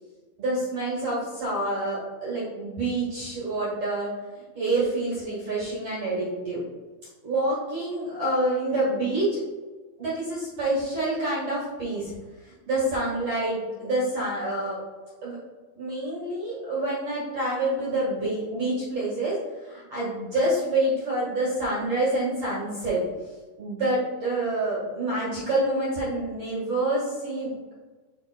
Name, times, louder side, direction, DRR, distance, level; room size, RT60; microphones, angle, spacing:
voice 1, 0.4-6.6 7.2-9.4 10.0-12.1 12.4-14.8 15.2-15.4 15.8-23.0 23.6-27.7, right 1 dB, 50° right, -7 dB, 2.0 m, -27 dB
7.0 x 5.9 x 2.2 m, 1.3 s
omnidirectional pair, 4.7 m